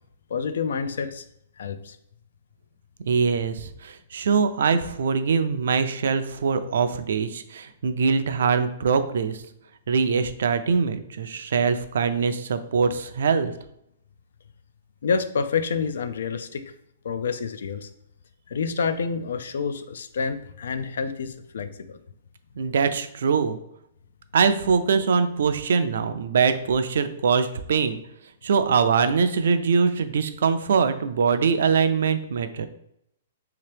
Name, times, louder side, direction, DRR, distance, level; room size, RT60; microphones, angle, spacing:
voice 1, 0.3-1.2 1.6-2.0 15.0-16.6 17.0-17.9 18.5-22.0, left 5 dB, 80° left, 10 dB, 0.3 m, -28 dB
voice 2, 3.1-9.4 9.9-13.5 22.6-23.6 24.3-28.0 28.4-32.7, right 5 dB, 70° right, 10 dB, 0.3 m, -23 dB
3.3 x 2.8 x 3.3 m, 0.75 s
hypercardioid pair, 175°, 0 cm